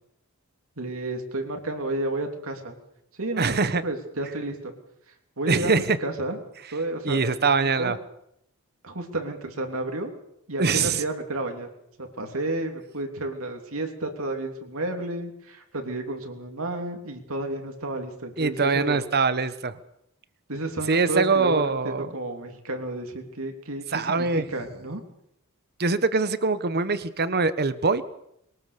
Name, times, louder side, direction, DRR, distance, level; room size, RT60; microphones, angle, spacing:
voice 1, 0.8-2.8 3.2-4.7 5.4-6.4 6.7-7.3 7.6-7.9 8.8-10.1 10.5-11.7 12.0-19.0 20.5-25.0, right 2 dB, 70° right, 4 dB, 3.3 m, -31 dB
voice 2, 3.4-3.8 5.5-6.0 7.0-8.0 10.6-11.0 18.4-19.8 20.9-22.1 23.9-24.5 25.8-28.0, right 4 dB, 50° right, 13 dB, 1.2 m, -23 dB
22.5 x 19.0 x 6.9 m, 0.76 s
head